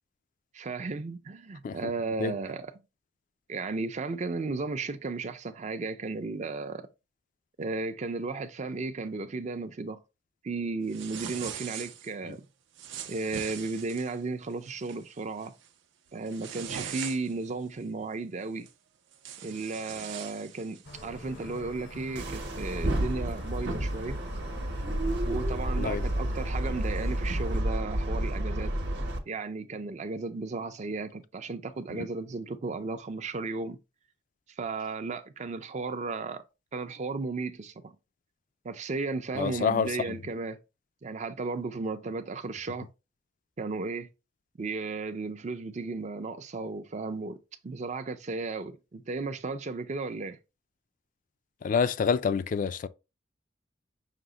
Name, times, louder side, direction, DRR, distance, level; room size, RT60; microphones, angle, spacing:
voice 1, 0.5-2.7 3.5-6.9 7.6-10.0 10.4-12.5 13.1-15.5 16.1-18.7 19.4-24.2 25.2-28.7 29.3-33.8 34.6-36.4 36.7-38.0 38.6-40.6 41.0-42.9 43.6-44.1 44.6-47.4 47.6-50.4, right 3 dB, 40° right, 0.5 m, -34 dB
sound 1, 10.9-12.1 12.8-14.2 14.7-15.0 15.4-15.7 16.1-17.5 18.7-18.8 19.1-21.1, right 8 dB, 85° right, 0.6 m, -41 dB
sound 2, 20.8-27.6, left 2 dB, 75° left, 0.8 m, -46 dB
sound 3, 22.2-29.2, right 1 dB, 65° right, 0.9 m, -30 dB
voice 2, 39.4-39.9 51.6-52.9, left 6 dB, 45° left, 0.3 m, -27 dB
5.8 x 2.1 x 3.8 m
head